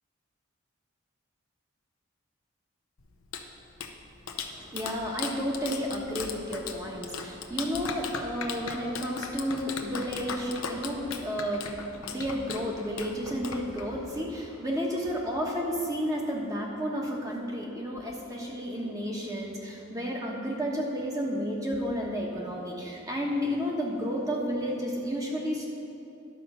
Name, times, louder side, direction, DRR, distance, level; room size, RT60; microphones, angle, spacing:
Clapping, 3.0-14.1, left 5 dB, 85° left, 0.8 m, -38 dB
voice 1, 4.3-25.6, equal, 15° right, -2 dB, 1.1 m, -32 dB
11.0 x 5.3 x 6.8 m, 2.8 s
head